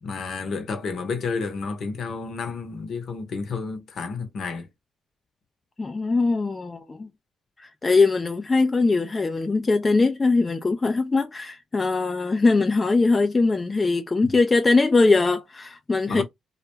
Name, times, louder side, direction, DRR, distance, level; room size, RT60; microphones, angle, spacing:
voice 1, 0.0-4.7 16.1-16.2, left 4 dB, 60° left, 0.8 m, -30 dB
voice 2, 5.8-7.1 7.6-16.2, left 3 dB, 30° left, 0.4 m, -21 dB
2.3 x 2.2 x 3.0 m
supercardioid pair, 60°, 0 cm